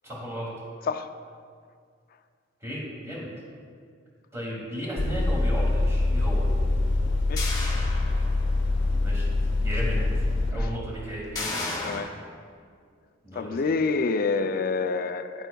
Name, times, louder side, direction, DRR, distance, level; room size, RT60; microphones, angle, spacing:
voice 1, 0.0-0.5 2.6-3.3 4.3-6.5 8.9-9.3 9.6-10.0 10.5-11.6 13.2-13.7, equal, 15° right, -5 dB, 2.1 m, -35 dB
sound 1, 5.0-10.5, left 2 dB, 70° left, 0.8 m, -24 dB
sound 2, 7.4-8.6 9.1-9.2 11.3-12.0, left 2 dB, 20° left, 1.3 m, -33 dB
voice 2, 11.8-12.1 13.3-15.5, left 4 dB, 50° left, 10 dB, 0.4 m, -27 dB
10.5 x 7.9 x 2.3 m, 2.1 s
head